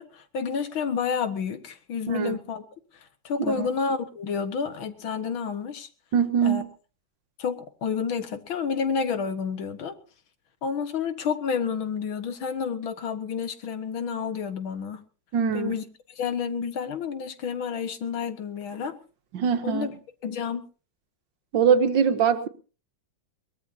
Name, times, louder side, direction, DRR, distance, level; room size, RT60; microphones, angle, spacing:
voice 1, 0.0-2.7 3.2-5.9 6.4-6.6 7.4-10.0 10.6-15.0 15.5-15.8 16.2-19.0 19.6-19.9 20.2-20.6, left 6 dB, 85° left, 2.2 m, -30 dB
voice 2, 6.1-6.7 15.3-15.7 19.3-19.9 21.5-22.5, right 7 dB, 70° right, 1.9 m, -22 dB
22.0 x 19.5 x 2.8 m
omnidirectional pair, 2.2 m